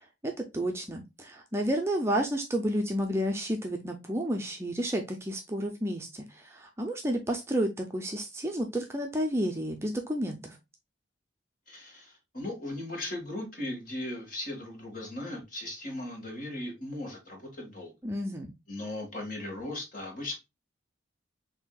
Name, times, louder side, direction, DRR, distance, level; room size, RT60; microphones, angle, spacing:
voice 1, 0.2-10.6 18.0-18.5, equal, 15° right, 0.5 m, -31 dB
voice 2, 11.7-17.9 18.7-20.4, left 1 dB, 45° left, 1.7 m, -38 dB
7.1 x 2.7 x 2.2 m
head